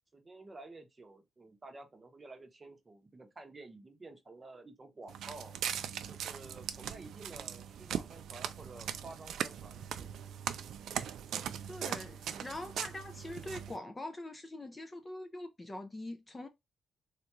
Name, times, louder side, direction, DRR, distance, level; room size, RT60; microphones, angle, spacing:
voice 1, 0.1-5.6 6.1-10.1, right 2 dB, 20° right, 0.7 m, -51 dB
Walk footsteps, 5.1-13.8, right 9 dB, 85° right, 0.3 m, -40 dB
voice 2, 11.7-16.5, left 1 dB, 20° left, 0.3 m, -43 dB
3.6 x 2.3 x 2.9 m
wide cardioid pair, 160°, 0 cm